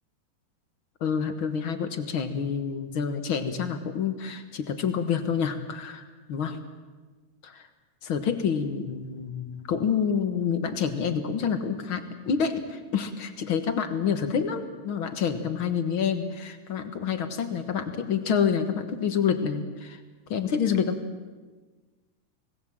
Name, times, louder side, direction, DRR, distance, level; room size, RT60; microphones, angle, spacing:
voice 1, 1.0-6.6 7.4-7.6 8.0-20.0 20.3-21.0, left 7 dB, 50° left, 8 dB, 1.7 m, -28 dB
25.0 x 19.0 x 7.6 m, 1.3 s
omnidirectional pair, 3.6 m